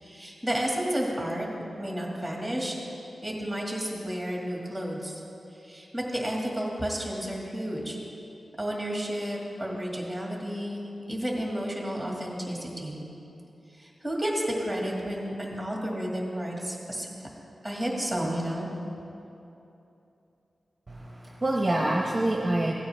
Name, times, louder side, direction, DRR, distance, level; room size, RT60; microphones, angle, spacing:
voice 1, 0.0-1.5 1.8-2.8 3.2-5.2 5.6-8.0 8.6-13.0 13.7-17.3 17.6-18.7, equal, 5° right, -2 dB, 2.0 m, -31 dB
voice 2, 20.9-22.7, right 1 dB, 25° right, -1 dB, 0.8 m, -26 dB
16.0 x 8.8 x 3.4 m, 2.9 s
wide cardioid pair, 100°, 0 cm